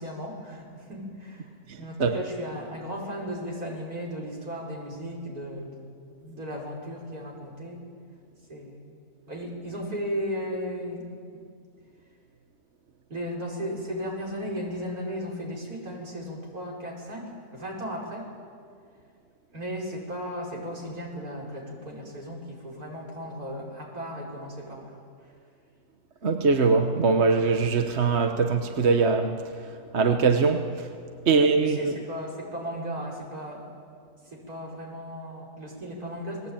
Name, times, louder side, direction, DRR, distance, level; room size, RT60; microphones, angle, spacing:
voice 1, 0.0-1.5 1.8-5.9 6.1-7.8 8.5-8.9 9.3-11.1 11.3-11.4 13.1-18.3 19.5-25.0 31.3-33.7 34.3-36.5, equal, 70° right, 5.8 m, -36 dB
voice 2, 26.2-29.4 29.9-30.9 31.3-31.9, right 4 dB, 50° right, 1.3 m, -22 dB
28.5 x 20.5 x 8.9 m
omnidirectional pair, 1.6 m